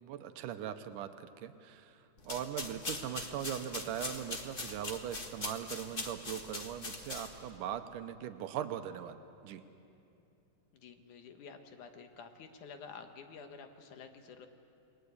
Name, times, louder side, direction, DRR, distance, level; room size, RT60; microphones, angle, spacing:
voice 1, 0.0-2.0 2.3-9.2 9.4-9.6, right 10 dB, 80° right, 9 dB, 2.4 m, -40 dB
sound 1, 2.2-7.5, left 2 dB, 55° left, 0.6 m, -42 dB
voice 2, 10.7-14.5, left 5 dB, 70° left, 6 dB, 2.7 m, -50 dB
28.5 x 20.5 x 8.4 m, 2.7 s
omnidirectional pair, 3.8 m